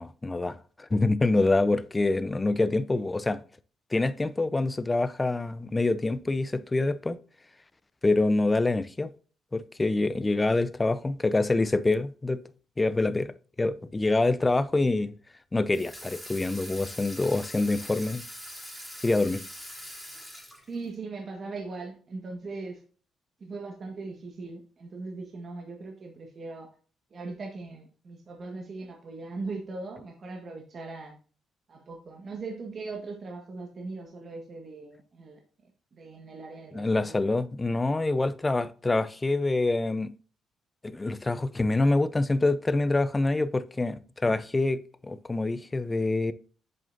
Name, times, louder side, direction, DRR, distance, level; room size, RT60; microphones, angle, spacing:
voice 1, 0.0-3.4 3.9-7.2 8.0-9.1 9.5-12.4 12.8-15.1 15.5-18.2 19.0-19.4 36.7-40.1 40.8-46.3, left 2 dB, 20° left, 0.6 m, -26 dB
Water tap faucet / Sink (filling or washing), 15.7-20.9, equal, 5° right, 3.3 m, -43 dB
voice 2, 20.7-22.8 23.4-26.7 27.1-31.2 31.7-35.4 35.9-37.1, right 3 dB, 45° right, 1.5 m, -39 dB
7.8 x 7.3 x 2.6 m
cardioid pair, 90°, 0 cm